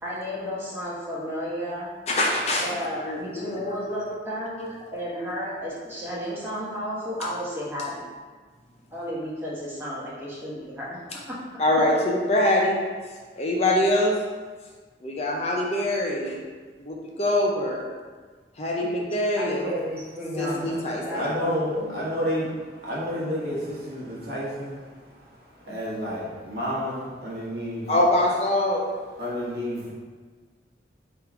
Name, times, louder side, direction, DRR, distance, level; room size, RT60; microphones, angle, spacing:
voice 1, 0.0-1.9 2.6-4.5 4.9-8.1 8.9-11.0 11.3-11.4 18.8-19.0 19.4-20.6 21.0-21.9, equal, 15° right, -8 dB, 1.1 m, -32 dB
voice 2, 2.1-2.7 3.0-4.0 4.6-4.7 11.6-12.8 13.4-14.1 15.0-16.4 16.8-17.9 18.6-19.7 20.4-21.3 27.9-28.8, left 1 dB, 35° left, -1 dB, 0.5 m, -24 dB
voice 3, 20.4-20.8 21.1-27.9 29.2-29.9, equal, 55° right, -6 dB, 1.2 m, -31 dB
3.5 x 3.0 x 4.8 m, 1.4 s
head